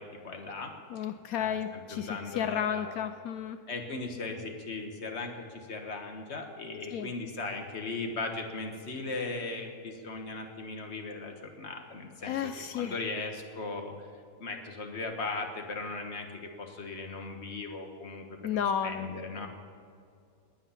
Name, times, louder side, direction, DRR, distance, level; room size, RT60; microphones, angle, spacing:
voice 1, 0.0-3.0 3.7-14.1 14.4-19.5, left 3 dB, 45° left, 4 dB, 1.6 m, -38 dB
voice 2, 0.9-3.6 6.9-7.1 12.2-13.0 18.4-19.1, left 8 dB, 75° left, 10 dB, 1.0 m, -32 dB
20.0 x 8.9 x 5.8 m, 2.2 s
omnidirectional pair, 1.6 m